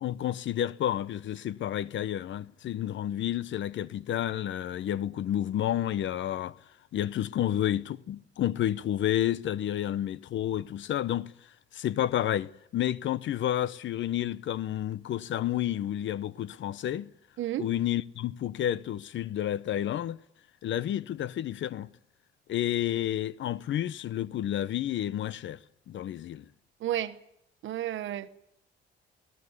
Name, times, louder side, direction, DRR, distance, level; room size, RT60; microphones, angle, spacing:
voice 1, 0.0-6.6 6.9-11.3 11.7-17.1 17.6-20.2 20.6-21.9 22.5-25.6 25.9-26.5, left 11 dB, 70° left, 1.0 m, -30 dB
voice 2, 17.4-17.7 26.8-27.2 27.6-28.3, right 12 dB, 75° right, 1.4 m, -32 dB
21.0 x 19.0 x 9.7 m
cardioid pair, 90°, 20 cm